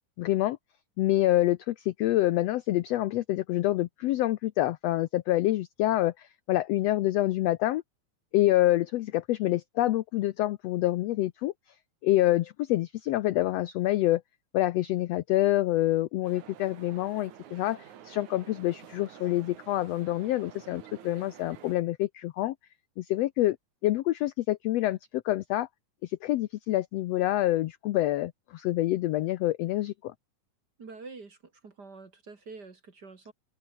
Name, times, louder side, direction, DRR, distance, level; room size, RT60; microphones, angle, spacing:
voice 1, 0.2-0.6 1.0-7.8 8.3-11.5 12.0-14.2 14.5-17.8 18.0-22.5 23.0-23.6 23.8-25.7 26.0-30.1, left 15 dB, 80° left, 1.5 m, -27 dB
sound 1, 16.2-21.8, right 10 dB, 70° right, 3.1 m, -50 dB
voice 2, 30.8-31.4 31.6-33.3, right 4 dB, 35° right, 2.6 m, -46 dB
open air
omnidirectional pair, 3.6 m